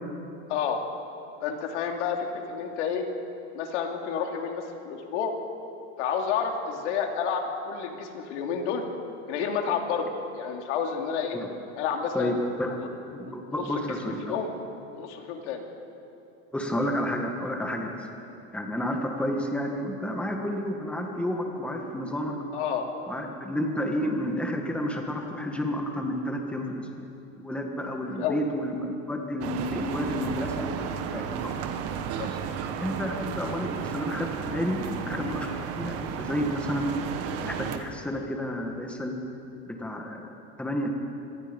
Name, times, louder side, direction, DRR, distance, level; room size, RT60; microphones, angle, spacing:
voice 1, 0.5-0.8 1.4-3.0 3.5-5.3 6.0-8.8 9.3-11.4 11.8-12.4 12.8-12.9 13.5-14.5 14.9-15.6 22.5-22.9 28.1-28.4 32.2-32.3, left 7 dB, 90° left, 2 dB, 3.0 m, -30 dB
voice 2, 12.1-12.7 13.1-14.4 16.5-18.1 18.5-22.4 23.1-27.0 27.3-30.8 31.1-31.5 32.3-32.4 32.8-36.9 37.4-39.1 39.7-40.9, equal, 5° left, 2 dB, 1.7 m, -31 dB
sound 1, 29.4-37.8, right 7 dB, 45° right, 1.5 m, -33 dB
25.5 x 22.5 x 5.3 m, 2.9 s
supercardioid pair, 160°, 34 cm